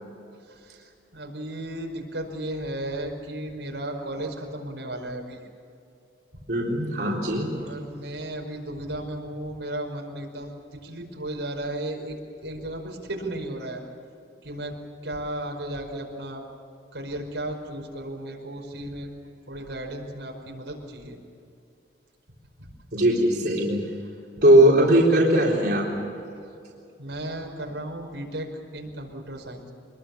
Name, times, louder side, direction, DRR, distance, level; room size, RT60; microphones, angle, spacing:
voice 1, 0.5-5.4 6.3-6.4 7.5-13.8 14.4-14.8 15.0-16.4 16.9-19.1 19.5-21.2 22.6-22.7 27.0-29.7, right 1 dB, 85° right, 1 dB, 5.3 m, -35 dB
voice 2, 6.5-7.5 22.9-23.9 24.4-25.9, right 1 dB, 60° right, -3 dB, 3.8 m, -19 dB
25.5 x 22.0 x 7.2 m, 2.5 s
head